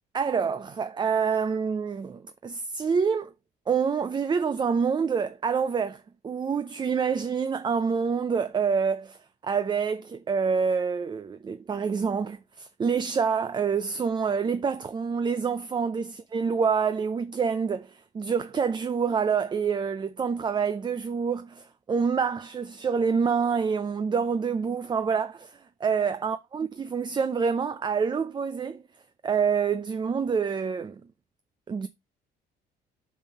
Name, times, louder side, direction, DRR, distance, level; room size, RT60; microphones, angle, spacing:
voice 1, 0.1-3.3 3.7-28.8 29.2-31.0 31.7-31.9, right 6 dB, 25° right, 0.5 m, -27 dB
5.4 x 5.3 x 5.5 m
cardioid pair, 110°, 17 cm